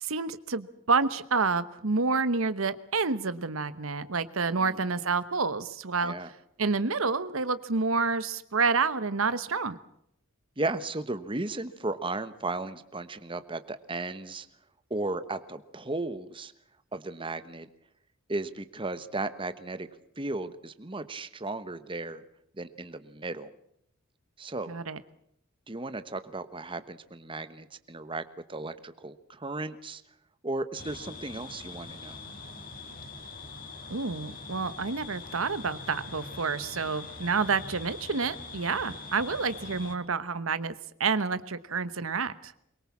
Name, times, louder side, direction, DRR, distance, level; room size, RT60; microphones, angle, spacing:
voice 1, 0.0-6.1 6.6-9.7 24.7-25.0 33.9-40.7 41.0-42.5, right 4 dB, 80° right, 14 dB, 1.1 m, -28 dB
voice 2, 10.6-14.5 14.9-16.5 16.9-17.7 18.3-19.9 20.2-22.2 22.6-23.5 24.4-24.8 25.7-28.2 28.5-30.0 30.4-32.2, right 2 dB, 25° right, 12 dB, 1.1 m, -35 dB
sound 1, 30.7-40.0, left 3 dB, 45° left, 3.4 m, -43 dB
23.5 x 22.5 x 7.3 m, 0.72 s
head